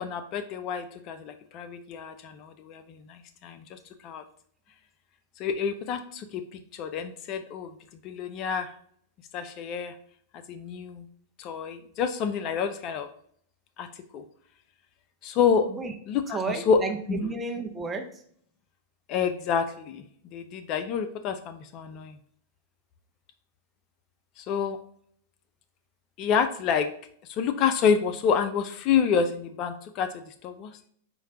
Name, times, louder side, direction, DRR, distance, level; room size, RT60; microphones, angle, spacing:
voice 1, 0.0-4.2 5.4-7.7 8.0-8.7 9.3-9.9 10.3-11.1 11.4-13.1 13.8-14.2 15.2-15.7 16.1-16.8 17.1-17.2 19.1-20.0 20.3-22.2 24.4-24.8 26.2-26.9 27.3-30.9, left 6 dB, 40° left, 9 dB, 0.4 m, -28 dB
voice 2, 16.3-18.2, right 4 dB, 15° right, 3 dB, 0.6 m, -32 dB
4.4 x 2.2 x 3.7 m, 0.62 s
figure-of-eight pair, 100°, 0 cm